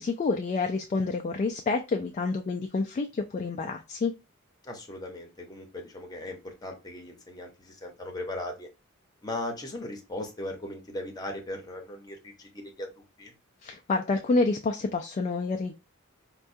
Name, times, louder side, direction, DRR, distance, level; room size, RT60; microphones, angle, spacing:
voice 1, 0.0-4.1 13.6-15.7, left 3 dB, 35° left, 4 dB, 0.3 m, -28 dB
voice 2, 4.6-8.7 9.2-13.3, left 1 dB, 20° left, 2 dB, 0.8 m, -38 dB
4.5 x 2.3 x 2.6 m, 0.27 s
head